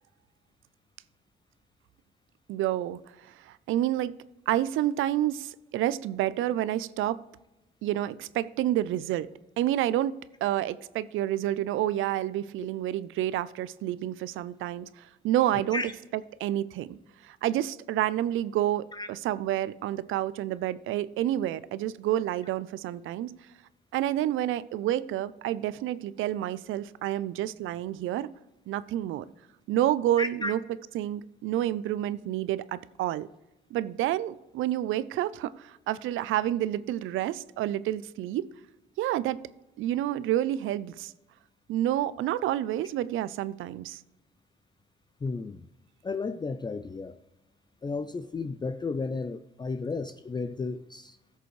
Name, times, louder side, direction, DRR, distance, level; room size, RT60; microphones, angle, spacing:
voice 1, 2.5-4.1 4.5-7.2 7.8-9.3 9.6-15.8 16.1-23.3 23.9-28.3 28.7-29.3 29.7-30.6 30.9-33.3 33.7-38.5 39.0-39.4 39.8-41.1 41.7-44.0, right 13 dB, 85° right, 17 dB, 0.5 m, -29 dB
voice 2, 30.2-30.5 45.2-45.7 46.0-47.2 47.8-51.2, left 4 dB, 20° left, 9 dB, 0.4 m, -33 dB
16.0 x 6.8 x 3.2 m, 0.98 s
cardioid pair, 90°, 20 cm